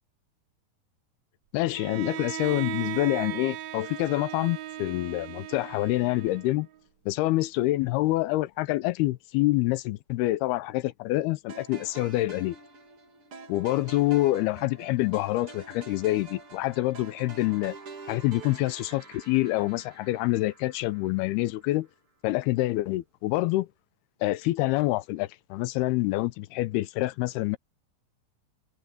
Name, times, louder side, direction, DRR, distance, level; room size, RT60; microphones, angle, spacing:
voice 1, 1.5-6.7 7.1-12.6 13.5-17.8 18.1-21.9 22.2-23.7 24.2-27.6, left 18 dB, 85° left, 2.6 m, -26 dB
Bowed string instrument, 1.7-6.8, right 13 dB, 75° right, 2.6 m, -37 dB
sound 1, 11.5-21.8, right 3 dB, 40° right, 2.8 m, -46 dB
omnidirectional pair, 4.6 m